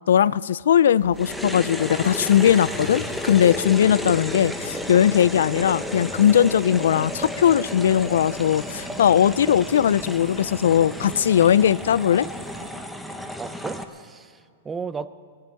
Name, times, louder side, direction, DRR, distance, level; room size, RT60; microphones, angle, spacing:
voice 1, 0.1-12.3, left 9 dB, 80° left, 20 dB, 0.3 m, -19 dB
sound 1, 1.0-12.7, right 6 dB, 60° right, 1.4 m, -45 dB
sound 2, 1.1-13.8, left 1 dB, ahead, 1.0 m, -33 dB
sound 3, 1.5-11.5, left 4 dB, 55° left, 2.4 m, -45 dB
voice 2, 13.3-15.1, right 5 dB, 15° right, 13 dB, 0.6 m, -34 dB
21.0 x 7.6 x 8.9 m, 2.2 s
hypercardioid pair, 140°, 0 cm